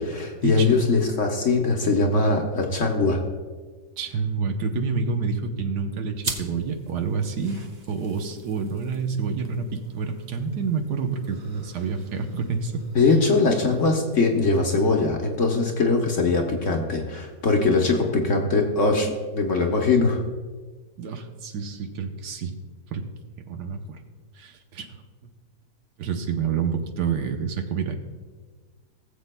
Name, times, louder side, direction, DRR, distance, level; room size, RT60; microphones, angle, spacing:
voice 1, 0.0-3.2 12.9-20.2, left 3 dB, 50° left, 2 dB, 1.1 m, -21 dB
voice 2, 4.0-7.6 7.9-12.8 21.0-22.5 22.9-23.0 23.5-24.0 24.4-24.9 26.0-27.9, right 5 dB, 70° right, 5 dB, 1.3 m, -28 dB
sound 1, 6.2-15.2, right 3 dB, 40° right, 0.5 m, -42 dB
19.0 x 7.5 x 2.2 m, 1.4 s
omnidirectional pair, 1.9 m